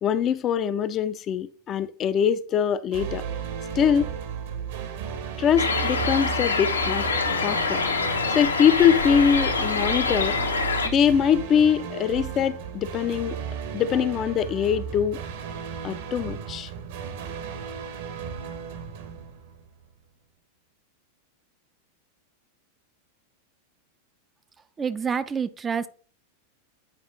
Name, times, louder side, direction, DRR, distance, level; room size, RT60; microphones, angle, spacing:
voice 1, 0.0-3.3 3.8-4.1 5.4-7.1 7.4-7.8 8.3-10.3 10.8-13.4 13.7-15.2 15.8-16.7, left 8 dB, 30° left, 0.5 m, -23 dB
sound 1, 2.9-20.0, right 7 dB, 55° right, 1.1 m, -35 dB
sound 2, 5.6-10.9, left 4 dB, 75° left, 1.0 m, -25 dB
voice 2, 24.8-25.9, right 6 dB, 20° right, 0.5 m, -27 dB
8.2 x 4.9 x 3.8 m
figure-of-eight pair, 90°, 0 cm